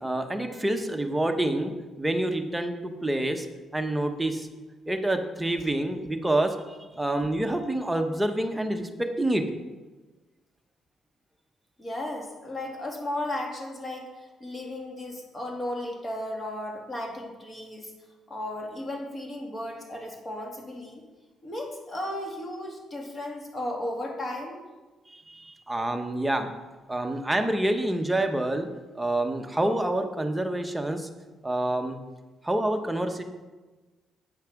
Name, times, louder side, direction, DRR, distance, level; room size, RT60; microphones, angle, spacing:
voice 1, 0.0-3.5 3.7-4.5 4.9-9.4 25.1-26.5 26.9-28.7 28.9-31.1 31.4-32.0 32.4-33.2, right 1 dB, 10° right, 5 dB, 1.0 m, -27 dB
voice 2, 11.8-17.9 18.3-21.0 21.4-24.7, left 1 dB, 30° left, 0 dB, 2.3 m, -35 dB
8.9 x 5.7 x 5.9 m, 1.2 s
cardioid pair, 90°, 0 cm